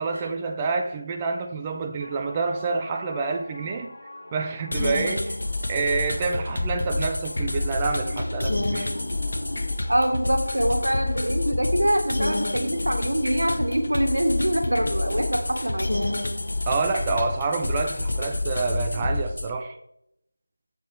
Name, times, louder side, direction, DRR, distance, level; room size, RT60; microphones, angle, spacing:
voice 1, 0.0-3.9 4.3-5.4 5.7-8.9 16.7-19.8, right 4 dB, 15° right, 4 dB, 0.5 m, -27 dB
sound 1, 2.0-18.3, left 1 dB, 40° left, 1.6 m, -40 dB
sound 2, 4.7-19.5, left 2 dB, 60° left, 1.1 m, -28 dB
voice 2, 9.9-16.2, right 1 dB, 70° right, 5 dB, 1.7 m, -24 dB
11.0 x 7.7 x 3.4 m, 0.79 s
figure-of-eight pair, 165°, 0 cm